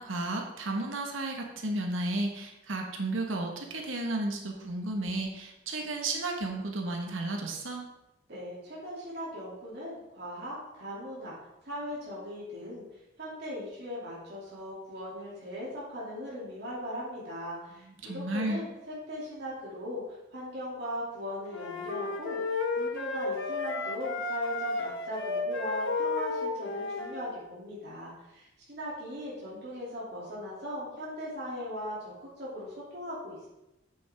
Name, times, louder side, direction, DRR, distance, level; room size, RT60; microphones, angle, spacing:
voice 1, 0.0-7.9 18.0-18.6, right 2 dB, 80° right, 2 dB, 1.3 m, -33 dB
voice 2, 8.3-11.4 11.6-12.8 13.2-33.5, equal, 55° right, -7 dB, 2.5 m, -39 dB
sound 1, 21.5-27.3, left 3 dB, 80° left, 1.2 m, -33 dB
8.6 x 7.0 x 3.5 m, 0.93 s
head